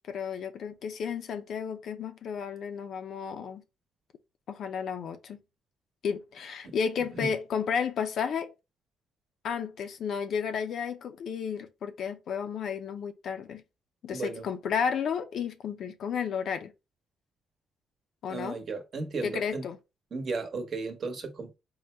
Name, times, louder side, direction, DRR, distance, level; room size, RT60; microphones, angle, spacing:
voice 1, 0.1-3.6 4.5-5.4 6.0-8.5 9.4-13.6 14.0-16.7 18.2-18.6 19.2-19.8, left 7 dB, 65° left, 0.6 m, -32 dB
voice 2, 14.1-14.5 18.3-19.6 20.1-21.6, right 3 dB, 50° right, 1.0 m, -35 dB
3.8 x 2.1 x 4.3 m
cardioid pair, 90°, 0 cm